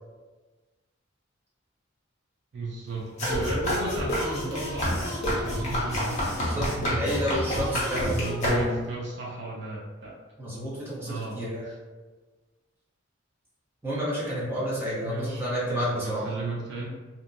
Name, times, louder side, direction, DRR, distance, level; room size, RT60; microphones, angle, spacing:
voice 1, 2.5-7.2 7.6-10.2 11.1-11.7 15.0-16.9, right 2 dB, 55° right, -4 dB, 0.4 m, -35 dB
sound 1, 3.2-9.0, left 1 dB, 35° left, 0.7 m, -28 dB
voice 2, 6.4-8.1 10.4-11.7 13.8-16.2, equal, 10° right, -9 dB, 0.8 m, -30 dB
2.7 x 2.1 x 2.5 m, 1.3 s
head